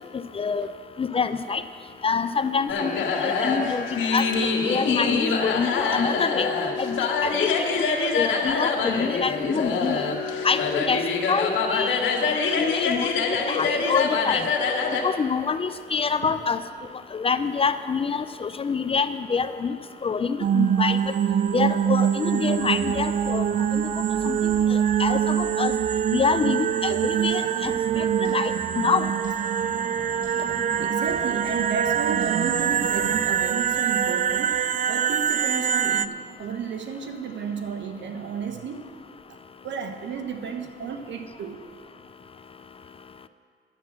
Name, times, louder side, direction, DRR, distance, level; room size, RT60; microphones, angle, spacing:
voice 1, 0.1-0.7 1.0-1.6 2.0-4.3 4.7-6.5 6.8-7.8 8.1-10.2 10.4-11.0 11.3-12.0 12.6-14.4 15.0-16.6 17.1-19.7 20.0-21.0 21.5-23.4 23.7-23.8 24.2-24.4 24.7-25.7 26.1-29.1, left 5 dB, 30° left, 12 dB, 0.4 m, -26 dB
sound 1, 2.7-15.0, left 4 dB, 75° left, 1.5 m, -25 dB
sound 2, 20.4-36.1, right 9 dB, 40° right, 0.4 m, -24 dB
sound 3, 27.1-33.0, right 1 dB, 25° right, 3.4 m, -44 dB
voice 2, 30.8-34.6 34.9-38.9 39.3-39.4 39.6-41.6, right 6 dB, 65° right, 6 dB, 1.2 m, -32 dB
10.5 x 7.2 x 7.4 m, 2.3 s
cardioid pair, 90°, 20 cm